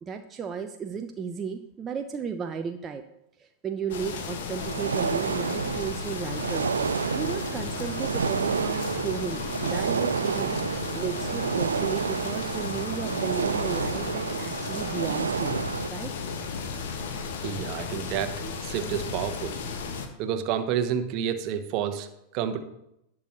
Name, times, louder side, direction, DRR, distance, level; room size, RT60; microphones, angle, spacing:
voice 1, 0.0-3.1 3.4-6.7 7.1-10.6 10.9-15.6 15.9-16.1, right 6 dB, 20° right, 5 dB, 0.7 m, -34 dB
sound 1, 3.9-20.1, left 5 dB, 55° left, 1.4 m, -34 dB
sound 2, 4.6-15.9, right 6 dB, 70° right, 0.4 m, -30 dB
voice 2, 17.4-18.4 18.6-19.6 20.2-22.6, right 9 dB, 40° right, 9 dB, 1.1 m, -29 dB
18.5 x 6.2 x 3.1 m, 0.81 s
figure-of-eight pair, 90°, 0 cm